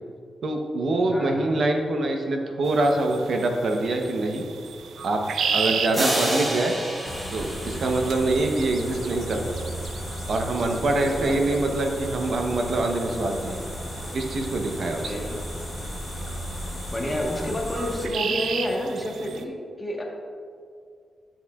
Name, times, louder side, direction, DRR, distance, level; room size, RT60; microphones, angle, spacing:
voice 1, 0.4-4.4 5.0-5.2 5.5-6.7 7.3-9.6 10.3-13.6 14.1-15.1, right 2 dB, 60° right, 3 dB, 0.8 m, -24 dB
voice 2, 1.1-1.5 11.0-11.4 15.0-15.4 16.9-20.0, left 1 dB, 10° left, -1 dB, 1.2 m, -29 dB
sound 1, 2.6-19.4, right 6 dB, 80° right, 0.4 m, -35 dB
sound 2, 5.9-8.8, right 1 dB, 30° right, 1.3 m, -29 dB
sound 3, 7.0-18.1, equal, 30° left, 0.8 m, -35 dB
10.5 x 7.2 x 2.3 m, 2.2 s
wide cardioid pair, 140°, 0 cm